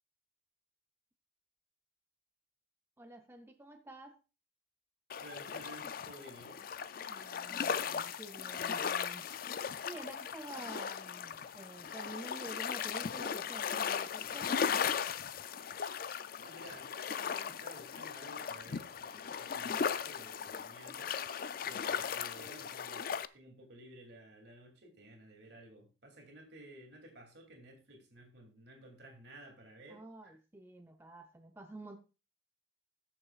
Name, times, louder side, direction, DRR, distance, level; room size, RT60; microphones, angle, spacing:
voice 1, 3.0-4.2 7.1-9.3 9.8-15.2 29.9-32.0, right 1 dB, 15° right, 4 dB, 0.5 m, -50 dB
sound 1, 5.1-23.3, left 7 dB, 50° left, 0.4 m, -37 dB
voice 2, 5.2-6.8 16.4-21.2 21.6-30.4, right 1 dB, 60° right, 3 dB, 2.8 m, -54 dB
19.5 x 6.9 x 2.4 m, 0.31 s
head